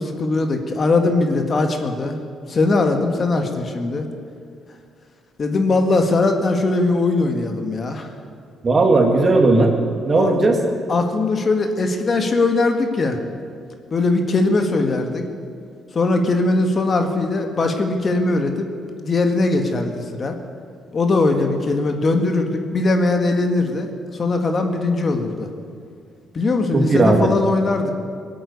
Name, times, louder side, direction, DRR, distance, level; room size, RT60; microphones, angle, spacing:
voice 1, 0.0-2.2 2.5-4.1 5.4-8.1 10.1-10.4 10.9-13.2 13.9-15.2 16.0-18.7 19.0-20.3 20.9-23.9 24.2-25.5 26.3-27.9, left 3 dB, 40° left, 5 dB, 1.7 m, -20 dB
voice 2, 8.6-9.7 10.1-10.6 26.7-27.3, right 2 dB, 35° right, 3 dB, 2.2 m, -16 dB
19.5 x 8.8 x 8.5 m, 2.3 s
cardioid pair, 90°, 0 cm